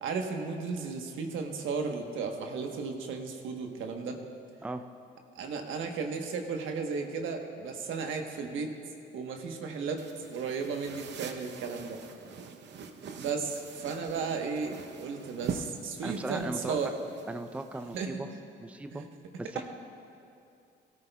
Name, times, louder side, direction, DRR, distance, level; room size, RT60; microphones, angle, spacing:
voice 1, 0.0-4.2 5.4-8.7 9.1-12.0 13.1-16.9 17.9-18.1 18.9-19.0, right 5 dB, 80° right, 3 dB, 1.1 m, -34 dB
sound 1, 10.0-18.0, right 6 dB, 60° right, 0.8 m, -43 dB
voice 2, 16.0-16.9 17.3-18.3 18.6-19.0 19.4-19.6, right 2 dB, 5° right, 8 dB, 0.5 m, -37 dB
17.0 x 13.0 x 2.3 m, 2.6 s
cardioid pair, 90°, 20 cm